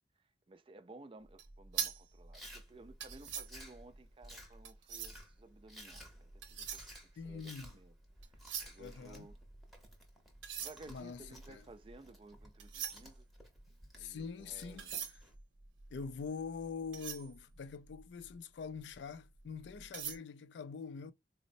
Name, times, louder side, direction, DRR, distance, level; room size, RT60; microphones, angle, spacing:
voice 1, 0.5-6.8 7.2-7.9 8.3-9.3 10.6-13.3 13.9-14.9, right 2 dB, 30° right, 0.4 m, -56 dB
sound 1, 1.3-5.4 6.2-7.8 8.1-9.9 10.3-18.3 18.8-18.9 19.4-20.2, right 8 dB, 85° right, 0.8 m, -44 dB
Chewing mastication, 2.3-15.3, equal, ahead, 0.7 m, -56 dB
voice 2, 7.2-7.8 8.8-9.3 10.9-11.6 14.0-15.2 15.9-21.1, left 5 dB, 70° left, 0.3 m, -44 dB
4.0 x 2.0 x 2.5 m
head